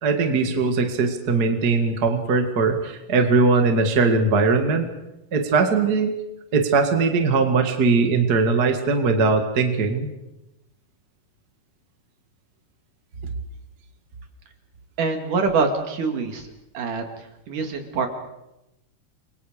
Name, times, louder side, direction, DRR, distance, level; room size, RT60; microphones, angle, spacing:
voice 1, 0.0-4.9 5.3-6.2 6.5-10.1, right 4 dB, 35° right, 5 dB, 1.9 m, -20 dB
voice 2, 15.0-16.5 16.7-18.1, right 4 dB, 60° right, 5 dB, 3.5 m, -25 dB
28.5 x 23.5 x 5.1 m, 0.92 s
omnidirectional pair, 4.3 m